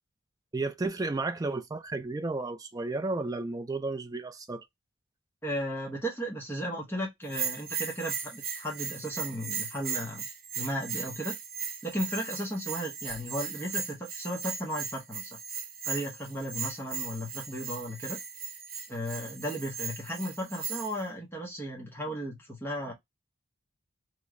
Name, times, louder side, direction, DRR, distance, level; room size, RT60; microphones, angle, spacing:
voice 1, 0.5-4.6, right 3 dB, 15° right, 0.3 m, -33 dB
voice 2, 5.4-10.2 10.6-11.3 11.8-15.4 15.8-18.2 18.9-22.9, equal, 10° left, 0.7 m, -35 dB
Bell, 7.3-21.0, right 6 dB, 40° right, 0.7 m, -37 dB
3.0 x 2.1 x 3.5 m
head